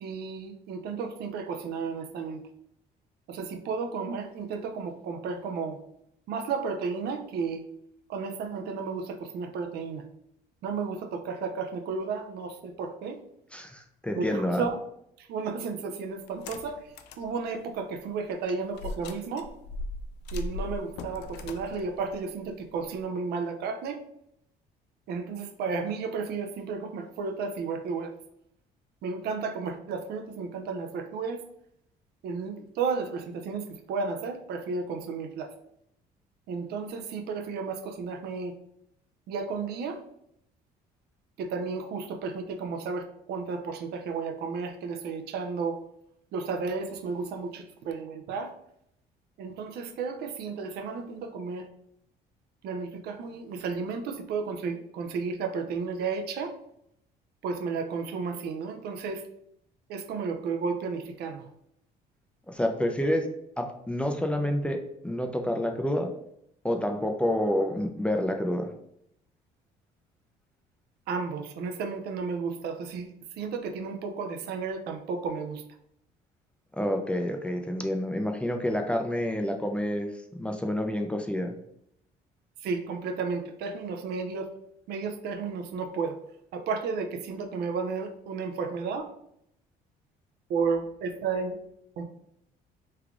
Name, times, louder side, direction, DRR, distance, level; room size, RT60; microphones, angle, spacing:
voice 1, 0.0-2.4 3.3-5.8 6.3-7.6 8.1-10.0 10.6-13.2 14.1-14.8 15.3-16.8 17.2-19.5 20.3-24.0 25.1-28.1 29.0-31.4 32.2-35.5 36.5-38.5 39.3-40.0 41.4-45.8 46.3-48.5 49.4-51.7 52.6-56.5 57.4-59.2 59.9-61.4 71.1-73.1 73.4-75.6 82.6-84.5 84.9-86.2 86.5-89.0 90.5-91.6 92.0-92.1, right 5 dB, 75° right, 6 dB, 0.5 m, -33 dB
voice 2, 13.5-14.7 62.5-63.3 63.6-64.8 65.0-66.1 66.6-68.7 76.8-81.5, left 1 dB, 5° left, 4 dB, 0.4 m, -28 dB
sound 1, 16.3-17.3 17.7-17.8 18.7-23.0, left 2 dB, 85° left, 0.4 m, -38 dB
3.3 x 2.3 x 3.6 m, 0.73 s
cardioid pair, 110°, 17 cm